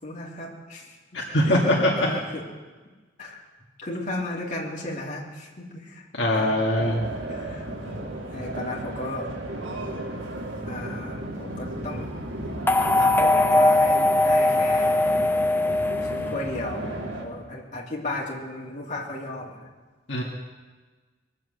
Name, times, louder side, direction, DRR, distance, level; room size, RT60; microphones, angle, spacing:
voice 1, 0.0-1.6 2.0-2.4 3.2-3.4 3.8-6.1 6.3-6.6 7.3-9.3 10.7-12.1 12.8-15.1 16.3-19.7, left 1 dB, 40° left, -3 dB, 3.1 m, -35 dB
voice 2, 1.1-2.1 6.1-7.0 20.1-20.2, left 1 dB, 65° left, -3 dB, 2.1 m, -22 dB
sound 1, 6.8-17.3, right 1 dB, 80° right, 3.5 m, -34 dB
sound 2, 12.7-16.9, left 2 dB, 10° left, 0.5 m, -21 dB
22.0 x 7.7 x 7.8 m, 1.3 s
head